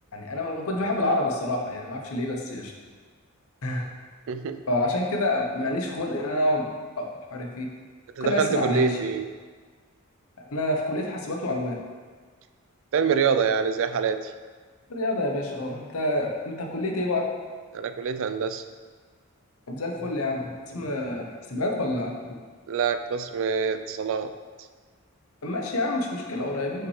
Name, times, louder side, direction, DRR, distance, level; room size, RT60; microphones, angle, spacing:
voice 1, 0.1-2.7 3.6-3.9 4.7-6.7 7.0-7.7 8.2-9.0 10.4-11.8 14.9-17.3 19.7-22.3 25.4-26.9, left 1 dB, 80° left, 1 dB, 0.9 m, -28 dB
voice 2, 4.3-4.6 8.2-9.3 12.9-14.3 17.7-18.6 22.7-24.3, right 6 dB, 65° right, 10 dB, 0.4 m, -25 dB
5.8 x 5.4 x 3.2 m, 1.5 s
head